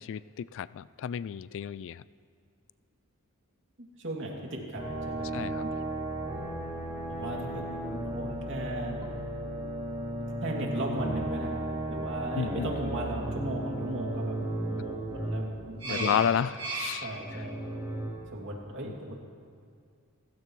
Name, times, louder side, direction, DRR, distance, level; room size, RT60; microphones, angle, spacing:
voice 1, 0.0-2.0 5.3-5.6 12.3-12.7 15.9-17.1, left 8 dB, 60° left, 18 dB, 0.3 m, -31 dB
voice 2, 3.8-5.7 7.1-9.0 10.4-16.4 17.0-17.6 18.3-19.1, right 1 dB, 60° right, -1 dB, 2.7 m, -37 dB
sound 1, 4.7-18.1, right 1 dB, 25° right, 3.6 m, -35 dB
28.5 x 15.5 x 3.2 m, 2.3 s
head